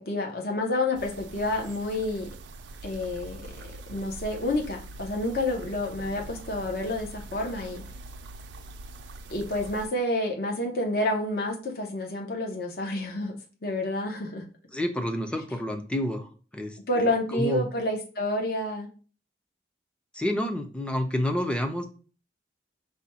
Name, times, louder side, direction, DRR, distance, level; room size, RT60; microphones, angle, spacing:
voice 1, 0.0-2.3 2.8-3.4 3.9-7.8 9.3-13.3 13.6-14.5 16.9-18.9, left 1 dB, 55° left, 1 dB, 0.7 m, -29 dB
sound 1, 0.9-9.9, right 2 dB, 80° right, 0.4 m, -43 dB
voice 2, 14.7-16.8 17.3-17.7 20.1-21.9, left 1 dB, 5° left, 5 dB, 0.5 m, -29 dB
5.1 x 2.2 x 4.1 m, 0.37 s
head